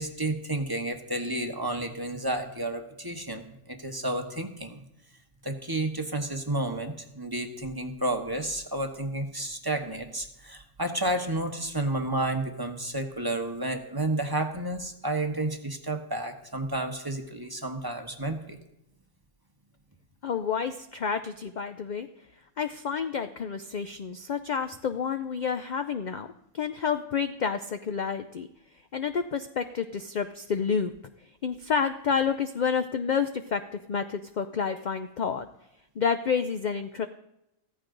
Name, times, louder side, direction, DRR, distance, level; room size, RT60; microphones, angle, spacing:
voice 1, 0.0-4.8 5.4-18.6, right 1 dB, 20° right, 4 dB, 1.1 m, -31 dB
voice 2, 20.2-22.1 22.6-26.3 26.5-28.5 28.9-30.9 31.2-35.5 36.0-37.1, left 6 dB, 60° left, 8 dB, 0.5 m, -29 dB
15.0 x 14.5 x 3.9 m, 0.85 s
omnidirectional pair, 1.4 m